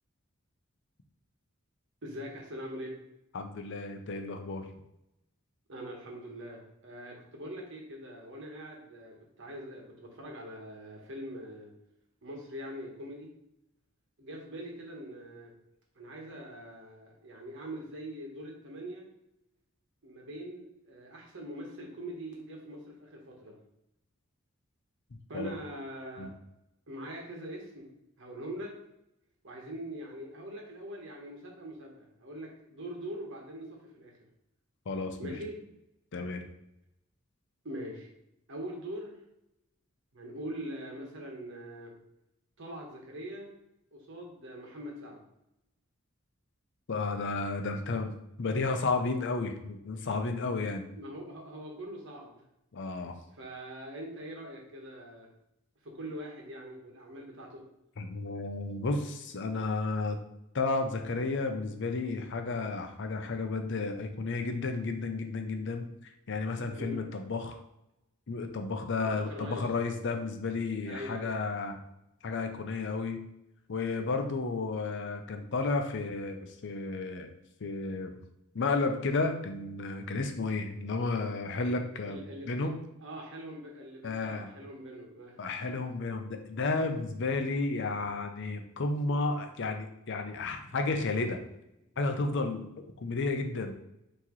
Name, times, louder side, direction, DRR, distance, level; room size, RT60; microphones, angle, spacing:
voice 1, 2.0-2.9 5.7-11.7 12.2-13.3 14.2-15.5 15.9-19.1 20.0-23.6 25.3-26.3 26.9-27.9 28.2-28.8 29.4-34.1 35.2-35.6 37.6-38.1 38.5-39.2 40.1-41.9 42.6-43.5 43.9-45.2 50.9-52.4 53.3-55.3 55.8-57.6 66.8-67.0 69.0-69.6 70.8-71.4 82.0-82.7 83.0-85.4, right 1 dB, 65° right, 0 dB, 1.2 m, -43 dB
voice 2, 3.3-4.7 25.3-25.5 26.2-26.3 34.9-35.4 36.1-36.4 46.9-48.1 48.4-50.8 52.7-53.1 58.0-60.2 60.5-67.6 68.3-71.8 72.2-73.2 73.7-77.3 77.6-78.2 78.5-82.8 84.0-84.5 85.4-91.4 92.0-92.7 93.0-93.7, left 3 dB, 60° left, 6 dB, 0.6 m, -32 dB
5.9 x 3.0 x 3.0 m, 0.85 s
head